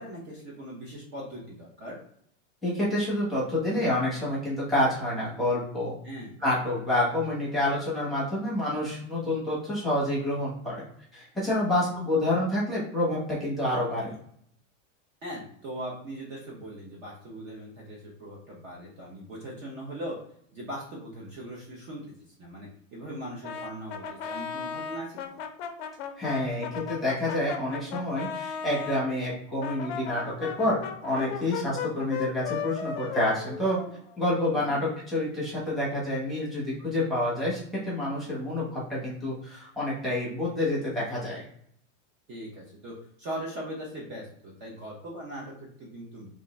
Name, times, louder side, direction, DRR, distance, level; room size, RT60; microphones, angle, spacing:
voice 1, 0.0-2.0 6.0-6.4 11.7-11.9 15.2-20.2 20.5-25.2 34.7-34.9 42.3-46.3, right 1 dB, 30° right, -3 dB, 0.7 m, -40 dB
voice 2, 2.6-5.9 6.4-10.8 11.1-14.1 26.2-30.8 31.0-33.8 34.2-41.4, left 1 dB, ahead, -8 dB, 0.9 m, -28 dB
Brass instrument, 23.4-29.1 29.6-34.4, left 7 dB, 55° left, 0.6 m, -36 dB
3.5 x 2.6 x 3.1 m, 0.67 s
supercardioid pair, 175°, 37 cm